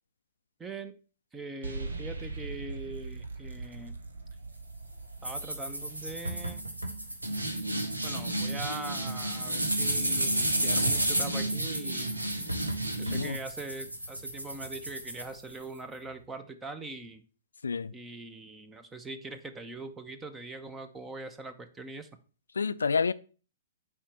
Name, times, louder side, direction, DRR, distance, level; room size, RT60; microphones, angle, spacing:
voice 1, 0.6-0.9 1.3-4.0 5.2-6.7 8.0-12.2 13.0-17.2 17.9-22.2, right 3 dB, 15° right, 0.9 m, -42 dB
sound 1, 1.6-11.1, right 3 dB, 70° right, 1.2 m, -43 dB
sound 2, 5.2-15.8, right 1 dB, 85° right, 1.6 m, -31 dB
voice 2, 13.1-13.4 17.6-17.9 22.6-23.1, left 5 dB, 70° left, 0.4 m, -28 dB
7.2 x 5.1 x 5.9 m
figure-of-eight pair, 115°, 0 cm